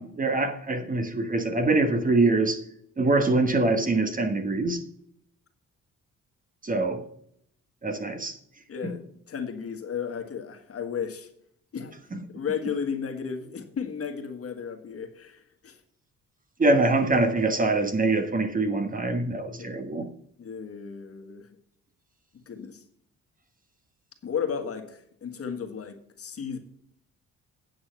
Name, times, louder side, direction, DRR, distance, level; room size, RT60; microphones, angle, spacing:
voice 1, 0.0-2.6 3.0-4.8 6.6-7.1 7.8-8.4 8.8-8.9 12.1-12.2 16.6-20.0, right 2 dB, 25° right, 7 dB, 1.3 m, -24 dB
voice 2, 8.7-11.3 11.7-12.0 12.3-15.8 19.6-19.7 20.4-21.5 22.5-22.8 24.2-26.6, left 7 dB, 50° left, 5 dB, 1.6 m, -34 dB
9.3 x 6.0 x 5.7 m, 0.68 s
cardioid pair, 90°, 30 cm